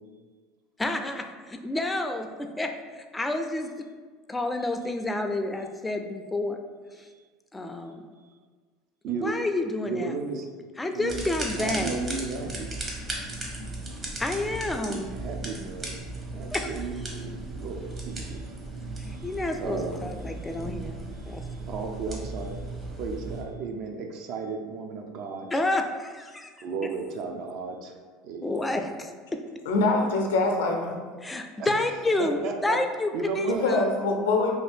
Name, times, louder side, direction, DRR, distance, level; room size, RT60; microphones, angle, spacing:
voice 1, 0.8-3.8 4.3-6.6 7.5-8.0 9.1-10.1 10.8-12.0 14.2-15.1 16.5-16.7 19.2-21.0 21.3-21.4 25.5-26.5 28.4-29.1 31.2-33.8, left 2 dB, 15° left, 5 dB, 0.3 m, -29 dB
voice 2, 9.0-9.4 9.8-10.5 10.9-11.3 11.6-12.8 14.9-16.0 16.3-18.4 19.2-19.3 19.6-20.1 21.7-22.6 23.0-25.5 26.6-28.0 28.2-28.8 31.6-31.8 32.1-32.8 33.1-33.7, right 4 dB, 60° right, 3 dB, 0.4 m, -34 dB
sound 1, 11.1-23.4, right 2 dB, 30° right, 0.7 m, -36 dB
voice 3, 29.7-31.0 33.4-34.5, left 3 dB, 85° left, 1 dB, 0.5 m, -24 dB
2.7 x 2.5 x 3.3 m, 1.5 s
hypercardioid pair, 90°, 0 cm